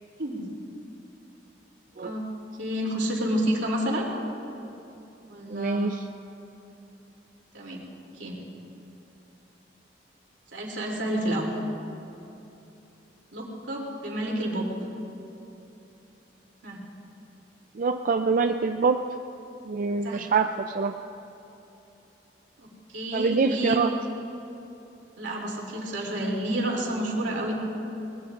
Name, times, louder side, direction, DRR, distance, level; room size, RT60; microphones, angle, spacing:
voice 1, 2.6-4.1 5.3-5.9 7.5-7.8 8.1-8.4 10.5-11.5 13.3-14.7 16.6-16.8 20.0-20.2 22.6-23.8 25.2-27.5, right 1 dB, 75° right, -2 dB, 2.9 m, -29 dB
voice 2, 5.5-6.0 17.7-19.0 19.7-21.0 23.1-23.9, right 4 dB, 45° right, 6 dB, 0.4 m, -25 dB
21.5 x 19.5 x 2.5 m, 3.0 s
head